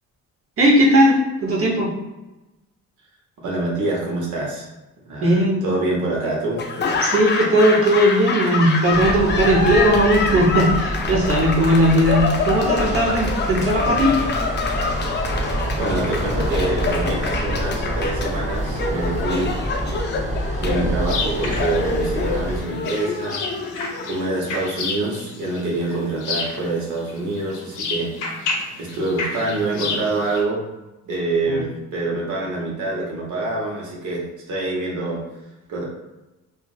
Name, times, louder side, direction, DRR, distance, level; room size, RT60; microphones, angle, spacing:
voice 1, 0.6-1.9 5.2-5.6 7.0-14.1 31.5-31.6, equal, 45° right, -2 dB, 1.0 m, -17 dB
voice 2, 3.4-4.7 5.1-6.7 15.8-19.5 20.6-23.4 24.1-28.1 28.8-30.6 31.1-35.2 35.7-35.8, right 2 dB, 80° right, -3 dB, 1.0 m, -25 dB
Laughter / Applause, 6.6-24.6, left 4 dB, 35° left, 0.4 m, -26 dB
sound 1, 8.9-22.6, right 1 dB, 25° right, 0.8 m, -27 dB
sound 2, 21.0-30.4, left 4 dB, 80° left, 0.6 m, -31 dB
2.9 x 2.4 x 2.4 m, 1.0 s
cardioid pair, 90°, 30 cm